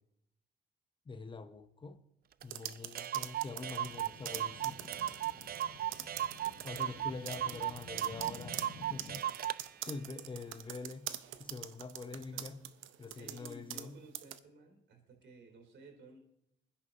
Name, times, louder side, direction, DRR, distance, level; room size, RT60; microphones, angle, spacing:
voice 1, 1.1-2.0 2.4-4.9 6.6-9.5 9.8-11.1 11.4-12.6 13.0-14.0, left 4 dB, 25° left, 0.9 m, -45 dB
Clock, 2.4-2.5 2.7-2.8 2.9-9.6, right 12 dB, 50° right, 0.4 m, -37 dB
sound 1, 2.4-5.6 5.9-6.8 7.2-13.9 14.1-14.4, right 12 dB, 90° right, 0.7 m, -43 dB
sound 2, 3.6-9.2, left 4 dB, 85° left, 1.5 m, -53 dB
voice 2, 12.2-12.5 13.1-16.2, right 2 dB, 70° right, 3.8 m, -55 dB
22.0 x 10.0 x 2.9 m
cardioid pair, 90°, 20 cm